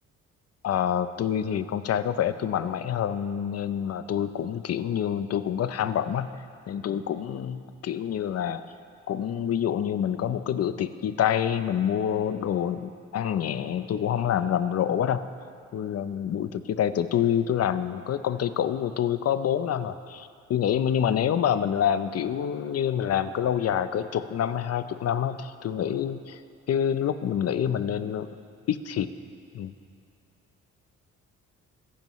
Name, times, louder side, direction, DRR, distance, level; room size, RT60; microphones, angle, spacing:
voice 1, 0.6-8.6 9.1-15.2 15.7-26.4 26.7-28.3 28.7-29.1 29.5-29.7, left 9 dB, 55° left, 12 dB, 0.6 m, -27 dB
23.0 x 10.5 x 3.1 m, 2.3 s
cardioid pair, 90°, 30 cm